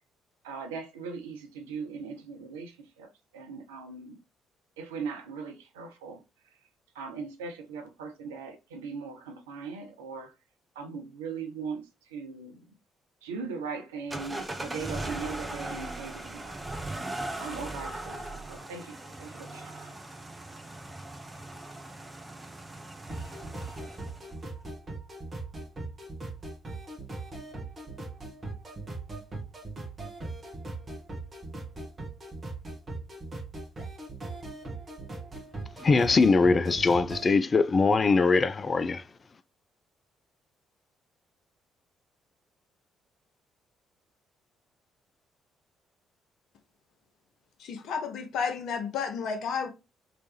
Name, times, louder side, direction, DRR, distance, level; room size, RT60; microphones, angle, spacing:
voice 1, 0.4-4.2 4.8-6.2 6.9-10.3 10.8-12.6 13.2-16.6 17.4-19.9, right 5 dB, 75° right, 0.5 m, -39 dB
sound 1, 14.1-24.3, right 2 dB, 20° right, 0.8 m, -39 dB
sound 2, 23.1-37.3, right 2 dB, 35° right, 1.3 m, -39 dB
voice 2, 35.8-39.0, left 4 dB, 35° left, 0.3 m, -22 dB
voice 3, 47.6-49.7, left 6 dB, 60° left, 0.7 m, -32 dB
3.1 x 3.0 x 3.1 m
figure-of-eight pair, 45°, 0 cm